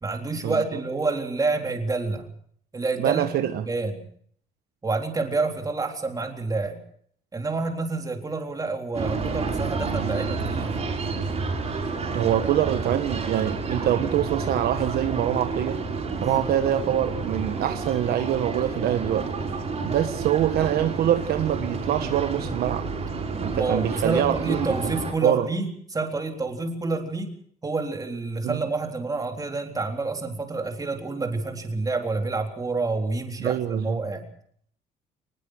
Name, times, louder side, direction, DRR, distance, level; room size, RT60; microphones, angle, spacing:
voice 1, 0.0-2.3 2.7-3.3 3.6-4.1 4.8-6.8 7.3-10.8 16.2-16.5 23.3-27.3 27.6-34.3, right 3 dB, 20° right, 3.8 m, -28 dB
voice 2, 3.0-3.6 12.1-15.8 16.2-19.3 19.8-22.9 23.4-24.7 25.2-25.5 28.4-28.6 33.4-34.0, right 11 dB, 70° right, 1.4 m, -25 dB
sound 1, 8.9-25.1, right 4 dB, 40° right, 6.3 m, -30 dB
23.0 x 20.5 x 6.4 m
cardioid pair, 110°, 17 cm